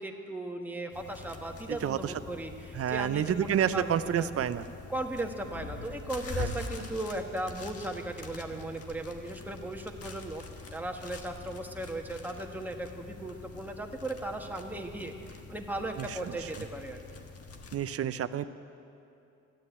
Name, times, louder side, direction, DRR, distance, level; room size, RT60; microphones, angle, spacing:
voice 1, 0.0-4.3 4.9-10.4 10.7-17.0, right 2 dB, 5° right, 2 dB, 1.5 m, -37 dB
sound 1, 0.9-17.8, left 4 dB, 50° left, 1.4 m, -44 dB
voice 2, 1.7-2.1 2.7-4.6 6.4-6.5 16.0-16.5 17.7-18.5, right 9 dB, 50° right, 13 dB, 0.6 m, -30 dB
14.5 x 9.8 x 8.2 m, 2.8 s
cardioid pair, 90°, 30 cm